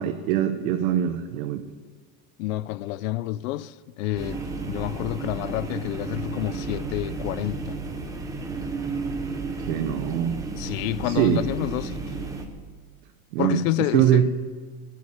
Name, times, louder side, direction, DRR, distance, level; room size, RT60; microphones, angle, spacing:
voice 1, 0.0-1.6 9.7-10.4 11.0-11.5 13.3-13.6 13.9-14.3, right 10 dB, 70° right, 1.0 m, -22 dB
voice 2, 2.4-7.8 10.6-12.1 13.4-14.3, left 16 dB, 65° left, 0.6 m, -29 dB
Bowed string instrument, 4.1-8.5, right 3 dB, 25° right, 3.5 m, -48 dB
sound 1, 4.2-12.5, right 3 dB, 10° right, 0.7 m, -33 dB
12.5 x 8.3 x 9.4 m
supercardioid pair, 175°, 43 cm